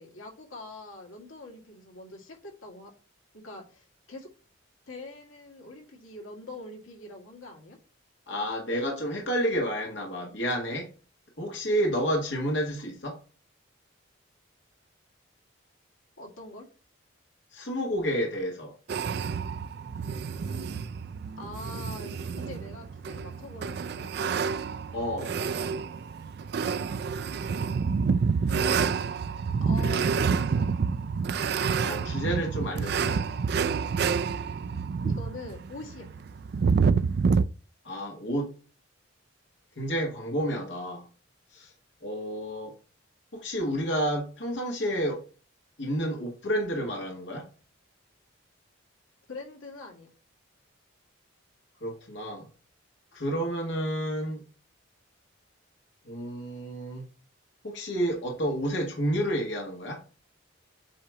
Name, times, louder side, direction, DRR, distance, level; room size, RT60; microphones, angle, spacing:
voice 1, 0.0-2.9 3.3-4.3 4.9-7.8 16.2-16.7 21.4-24.1 29.6-30.7 35.0-36.1 49.3-50.1, left 2 dB, 85° left, 2.0 m, -43 dB
voice 2, 8.3-10.9 11.4-13.2 17.5-18.7 24.9-25.4 31.8-33.2 37.8-38.5 39.8-41.1 41.5-41.7 42.0-42.7 43.3-45.2 45.8-47.5 51.8-52.5 53.1-54.4 56.0-57.1 57.6-60.0, equal, 60° left, 1.7 m, -30 dB
sound 1, 18.9-37.4, right 5 dB, 50° right, 0.3 m, -28 dB
8.4 x 2.9 x 4.7 m
head